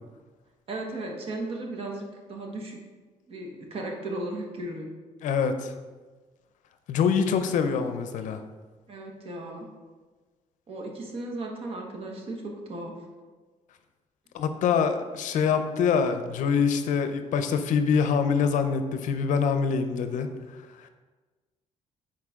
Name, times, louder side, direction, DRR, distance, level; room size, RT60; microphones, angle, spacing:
voice 1, 0.7-2.8 3.3-4.9 8.9-9.7 10.7-12.9 20.2-20.3, right 2 dB, 45° right, 1 dB, 1.4 m, -36 dB
voice 2, 5.2-5.7 6.9-8.4 14.3-20.3, left 6 dB, 70° left, 8 dB, 0.6 m, -25 dB
9.5 x 4.4 x 3.7 m, 1.3 s
cardioid pair, 155°, 13 cm